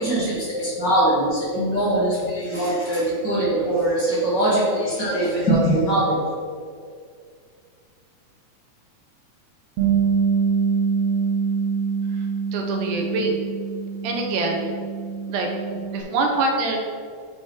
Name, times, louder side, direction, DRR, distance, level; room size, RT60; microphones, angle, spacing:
voice 1, 0.0-6.1, right 1 dB, 40° left, -8 dB, 2.3 m, -22 dB
Bass guitar, 9.8-16.0, right 6 dB, 70° right, 2.4 m, -24 dB
voice 2, 12.5-13.3 14.0-14.7 15.3-16.8, right 2 dB, 85° right, 2 dB, 2.5 m, -25 dB
7.3 x 4.3 x 4.7 m, 2.1 s
omnidirectional pair, 3.5 m